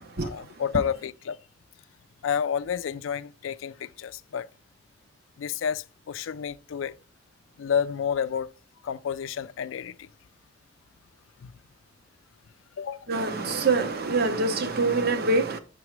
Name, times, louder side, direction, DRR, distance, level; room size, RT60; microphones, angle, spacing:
voice 1, 0.2-1.4 2.2-4.5 5.4-6.9 7.6-8.5 8.8-10.1 11.4-11.5 12.8-13.1, left 7 dB, 90° left, 0.4 m, -30 dB
voice 2, 13.1-15.6, right 3 dB, 55° right, 0.8 m, -24 dB
6.2 x 5.9 x 3.2 m
head